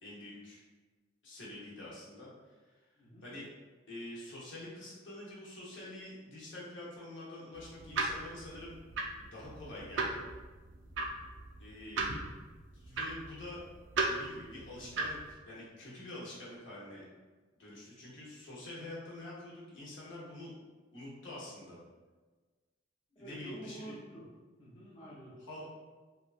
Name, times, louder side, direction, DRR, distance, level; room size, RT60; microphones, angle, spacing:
voice 1, 0.0-0.6 1.2-2.8 3.2-3.5 3.9-8.8 9.2-10.2 11.6-12.2 12.7-13.7 14.0-17.0 17.6-20.6 20.9-21.8 23.1-23.9 25.4-25.7, left 1 dB, 70° left, -6 dB, 0.9 m, -46 dB
sound 1, 7.6-15.3, right 3 dB, 70° right, 0.4 m, -37 dB
voice 2, 23.2-24.3 24.6-25.4, right 1 dB, 25° left, -6 dB, 0.5 m, -48 dB
2.8 x 2.3 x 2.4 m, 1.3 s
head